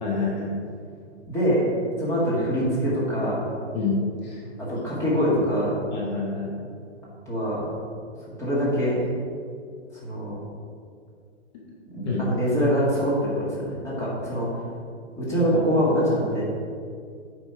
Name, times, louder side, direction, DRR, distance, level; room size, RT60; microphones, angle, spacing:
voice 1, 0.0-0.5 3.7-4.0 4.2-4.4 4.9-5.1 5.9-6.5 12.0-12.2, left 4 dB, 40° left, -3 dB, 1.4 m, -28 dB
voice 2, 1.3-1.7 2.0-3.4 4.6-5.7 7.3-7.7 8.4-9.0 10.0-10.4 11.9-14.5 15.1-16.4, equal, 10° left, -7 dB, 1.8 m, -24 dB
8.7 x 5.1 x 4.8 m, 2.2 s
hypercardioid pair, 155°, 36 cm